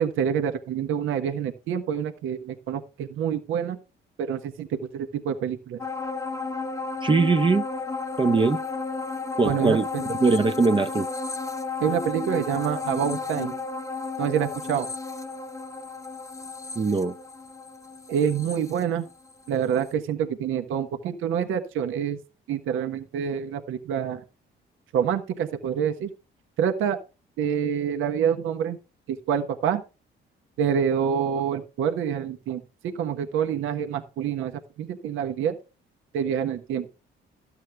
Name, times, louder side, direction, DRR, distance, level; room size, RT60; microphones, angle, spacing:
voice 1, 0.0-3.8 4.2-5.8 9.4-10.0 11.8-13.5 14.2-14.9 18.1-19.1 19.5-22.2 22.5-24.2 24.9-26.1 26.6-27.0 27.4-28.8 29.1-29.8 30.6-35.6 36.1-36.9, right 8 dB, 85° right, 1.3 m, -27 dB
sound 1, 5.8-19.5 19.9-20.0, left 4 dB, 15° left, 0.9 m, -33 dB
voice 2, 7.0-7.7 8.2-8.6 9.4-11.1 16.8-17.1, right 4 dB, 25° right, 0.7 m, -21 dB
13.0 x 8.4 x 3.5 m
cardioid pair, 90°, 20 cm